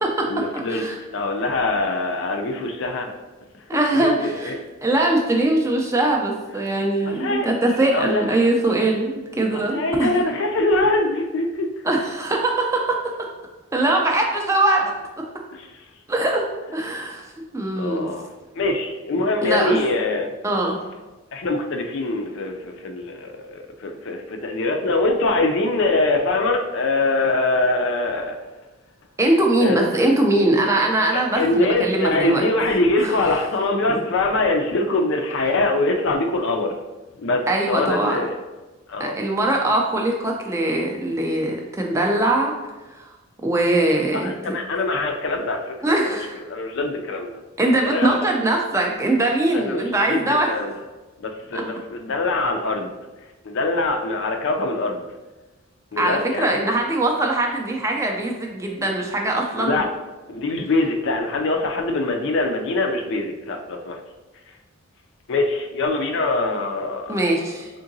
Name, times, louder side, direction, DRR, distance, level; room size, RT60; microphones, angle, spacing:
voice 1, 0.3-0.8 1.1-3.1 3.7-4.6 7.1-7.5 7.9-8.5 9.5-11.9 15.5-15.8 17.8-18.3 18.5-20.3 21.3-28.4 29.6-29.9 31.1-36.8 37.2-38.3 38.9-39.2 44.1-45.8 46.0-46.2 46.5-47.3 47.8-48.3 49.5-50.2 50.5-50.7 51.2-52.9 53.4-55.0 55.9-56.7 59.6-59.9 60.3-64.0 65.3-67.2, left 2 dB, 55° left, 4 dB, 0.4 m, -23 dB
voice 2, 3.7-4.5 4.8-10.1 11.8-13.0 13.7-14.9 16.1-16.4 16.7-17.3 17.5-18.1 19.4-19.8 20.4-20.8 29.2-32.4 33.0-33.1 37.5-38.2 39.0-42.5 43.0-43.1 43.4-44.3 45.8-46.4 47.6-50.5 51.5-51.6 56.0-59.9 67.1-67.7, right 2 dB, 15° right, 0 dB, 0.3 m, -21 dB
3.7 x 3.6 x 2.6 m, 1.1 s
head